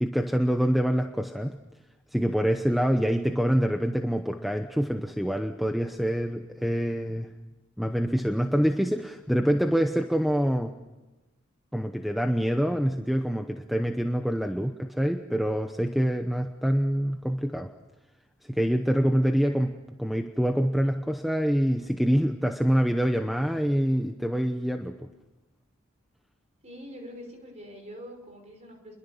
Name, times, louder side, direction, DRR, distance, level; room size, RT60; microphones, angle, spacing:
voice 1, 0.0-1.6 2.1-7.3 7.8-10.8 11.7-17.7 18.5-25.0, equal, ahead, 5 dB, 0.8 m, -26 dB
voice 2, 26.6-29.0, equal, 30° right, 3 dB, 5.6 m, -44 dB
29.5 x 22.0 x 7.3 m, 1.1 s
head